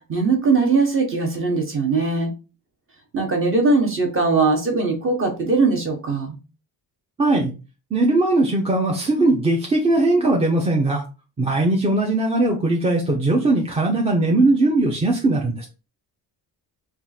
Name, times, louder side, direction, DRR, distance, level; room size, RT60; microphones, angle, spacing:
voice 1, 0.1-2.3 3.1-6.4, right 3 dB, 30° right, 3 dB, 1.0 m, -20 dB
voice 2, 7.2-7.5 7.9-11.0 11.4-15.7, right 2 dB, 15° right, 0 dB, 0.5 m, -19 dB
3.5 x 2.5 x 4.1 m, 0.32 s
cardioid pair, 165°, 39 cm